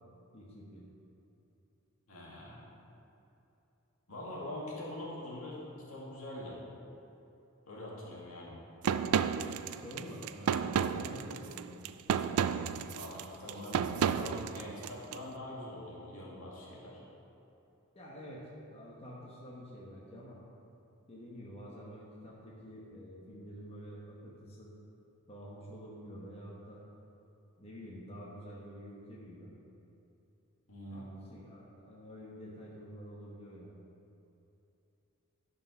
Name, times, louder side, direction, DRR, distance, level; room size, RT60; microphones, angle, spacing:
voice 1, 0.3-0.8 9.7-12.2 17.9-20.4 21.1-24.7 25.3-26.8 27.6-29.5 30.9-33.8, equal, 30° left, -5 dB, 1.2 m, -48 dB
voice 2, 2.1-2.6 4.1-6.6 7.6-8.6 12.9-17.0 30.7-31.1, left 1 dB, 70° left, -5 dB, 2.3 m, -44 dB
sound 1, 8.8-15.2, right 7 dB, 90° right, 0.3 m, -32 dB
11.5 x 5.3 x 5.6 m, 3.0 s
head